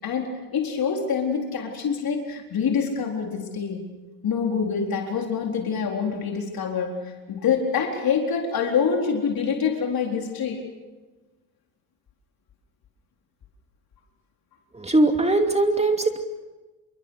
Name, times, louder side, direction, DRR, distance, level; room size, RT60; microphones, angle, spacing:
voice 1, 0.0-3.8 4.2-10.6, left 6 dB, 50° left, 1 dB, 4.2 m, -26 dB
voice 2, 14.7-16.2, right 2 dB, 15° right, 5 dB, 2.7 m, -21 dB
27.5 x 23.0 x 6.6 m, 1.2 s
supercardioid pair, 80°, 46 cm